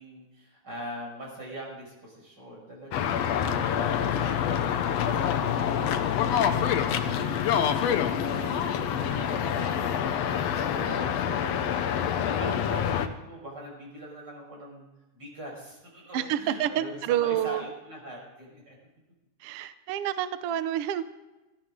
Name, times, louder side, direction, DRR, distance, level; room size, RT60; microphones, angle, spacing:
voice 1, 0.0-14.9 15.1-18.8, equal, 35° right, -2 dB, 6.5 m, -42 dB
sound 1, 2.9-13.1, left 9 dB, 70° left, 1.9 m, -26 dB
voice 2, 16.1-17.6 19.4-21.0, right 11 dB, 70° right, 12 dB, 1.5 m, -28 dB
18.0 x 15.0 x 3.8 m, 1.1 s
omnidirectional pair, 3.4 m